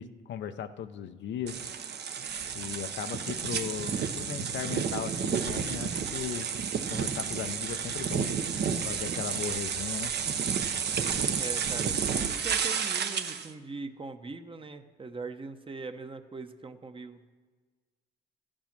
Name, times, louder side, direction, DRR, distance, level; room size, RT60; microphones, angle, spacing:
voice 1, 0.0-1.6 2.5-6.5 6.9-8.4 8.8-10.1, left 8 dB, 70° left, 9 dB, 0.7 m, -37 dB
sound 1, 1.5-13.5, right 7 dB, 55° right, 1.0 m, -31 dB
voice 2, 11.3-17.3, right 4 dB, 25° right, 7 dB, 0.9 m, -41 dB
14.0 x 8.9 x 6.0 m, 1.4 s
cardioid pair, 90°, 20 cm